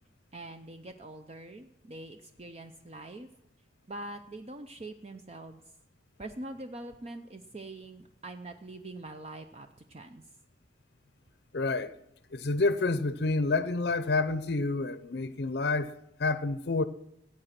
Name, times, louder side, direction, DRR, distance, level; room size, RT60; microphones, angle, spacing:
voice 1, 0.3-3.3 3.9-5.6 6.2-10.2, right 2 dB, 35° right, 0.6 m, -44 dB
voice 2, 11.5-11.9 12.3-15.9 16.2-16.8, left 3 dB, 65° left, 0.7 m, -28 dB
16.0 x 8.9 x 5.9 m
head